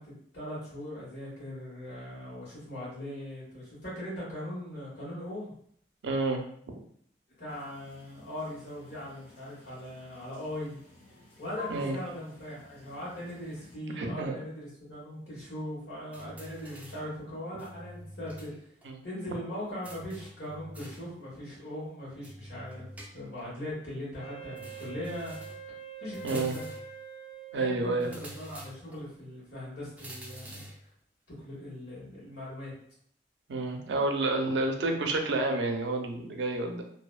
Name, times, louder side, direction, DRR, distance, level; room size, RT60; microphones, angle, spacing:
voice 1, 0.0-5.5 7.4-10.8 11.4-18.7 19.0-22.9 23.1-25.4 26.0-26.7 27.5-30.6 31.4-32.7, left 1 dB, 80° left, -7 dB, 1.3 m, -40 dB
voice 2, 6.0-6.4 11.7-12.0 14.0-14.4 18.8-19.0 26.2-26.5 27.5-28.1 33.5-36.8, right 2 dB, 80° right, 3 dB, 0.4 m, -29 dB
sound 1, 7.5-13.8, left 2 dB, 45° left, 1.1 m, -51 dB
sound 2, 16.1-17.1 17.6-18.6 18.8-18.9 19.8-21.1 22.2-23.5 24.6-25.7 26.1-26.9 28.0-29.0 30.0-30.8, right 1 dB, 10° right, 0.4 m, -47 dB
Wind instrument woodwind instrument, 24.2-28.4, right 7 dB, 30° left, 0.6 m, -45 dB
2.6 x 2.1 x 2.3 m, 0.64 s
head